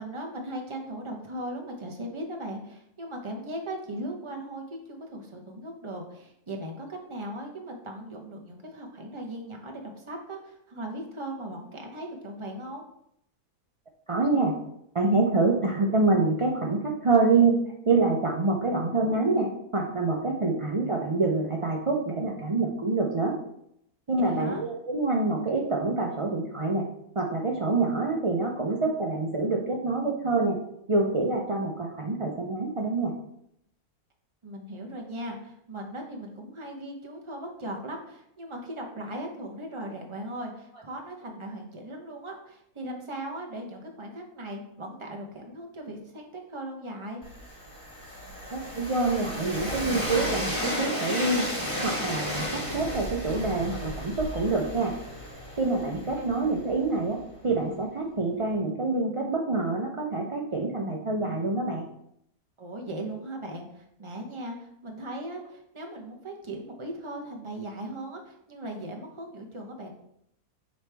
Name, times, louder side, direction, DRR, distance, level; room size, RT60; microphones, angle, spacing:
voice 1, 0.0-12.8 24.2-24.6 34.4-47.2 56.1-56.2 62.6-69.9, right 1 dB, 25° right, 1 dB, 0.8 m, -38 dB
voice 2, 14.1-14.5 14.9-23.3 24.1-26.9 27.2-30.6 30.9-33.1 48.5-51.5 51.8-55.0 55.6-61.8, right 3 dB, 55° right, 0 dB, 0.3 m, -26 dB
Train, 47.2-57.1, equal, 20° left, 1.5 m, -34 dB
9.3 x 3.1 x 3.4 m, 0.75 s
omnidirectional pair, 1.5 m